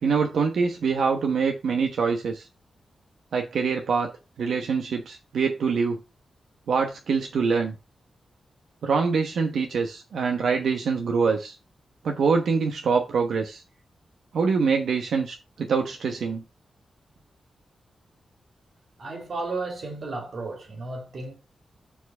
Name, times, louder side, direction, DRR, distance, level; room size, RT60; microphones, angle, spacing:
voice 1, 0.0-2.5 3.3-4.1 4.4-6.0 6.7-7.8 8.8-11.6 12.0-13.6 14.3-16.4, right 5 dB, 85° right, 1.1 m, -24 dB
voice 2, 19.0-21.3, right 3 dB, 55° right, 2.6 m, -33 dB
7.1 x 4.7 x 5.4 m
wide cardioid pair, 145°, 0 cm